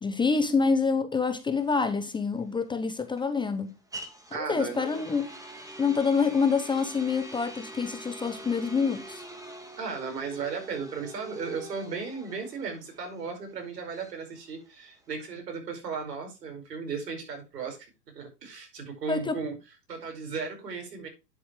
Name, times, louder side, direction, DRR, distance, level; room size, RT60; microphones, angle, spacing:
voice 1, 0.0-3.7 4.3-5.3 5.8-9.2 19.1-19.4, left 5 dB, 10° left, 0.8 m, -27 dB
sound 1, 1.5-15.4, right 1 dB, 5° right, 1.9 m, -45 dB
voice 2, 4.3-5.0 9.8-19.6 19.9-21.1, right 5 dB, 80° right, 5.2 m, -36 dB
9.8 x 7.8 x 3.1 m
hypercardioid pair, 120°, 48 cm